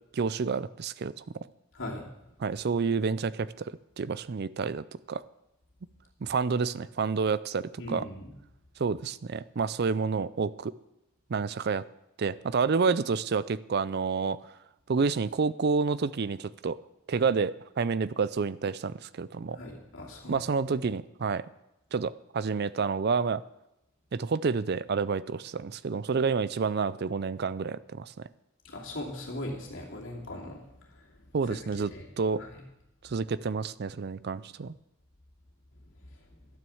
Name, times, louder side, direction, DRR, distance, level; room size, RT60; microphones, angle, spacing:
voice 1, 0.1-1.5 2.4-3.7 4.0-5.2 6.2-8.0 8.8-10.7 11.3-11.8 12.2-14.4 14.9-16.8 17.1-19.6 20.3-21.4 21.9-23.4 24.1-28.3 31.3-32.4 33.0-34.7, right 5 dB, 50° right, 17 dB, 0.4 m, -29 dB
voice 2, 7.8-8.3 19.5-20.4 28.6-31.1 31.5-31.6 31.9-32.1 32.4-32.6 36.1-36.2, left 1 dB, 60° left, -2 dB, 2.8 m, -39 dB
12.5 x 9.3 x 7.1 m, 0.89 s
head